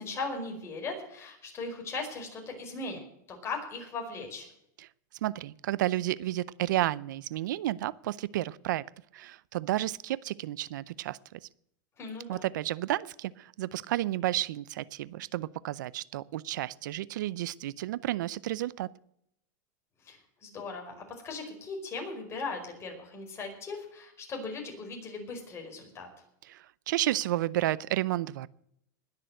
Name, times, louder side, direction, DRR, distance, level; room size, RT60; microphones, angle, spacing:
voice 1, 0.0-3.0 3.3-4.5 12.0-12.5 20.0-20.9 21.2-26.1, left 3 dB, 25° left, 2 dB, 4.9 m, -38 dB
voice 2, 5.2-8.9 9.1-11.4 12.3-18.9 26.5-28.5, right 14 dB, 80° right, 20 dB, 0.5 m, -31 dB
20.5 x 6.8 x 7.7 m, 0.75 s
supercardioid pair, 135°, 10 cm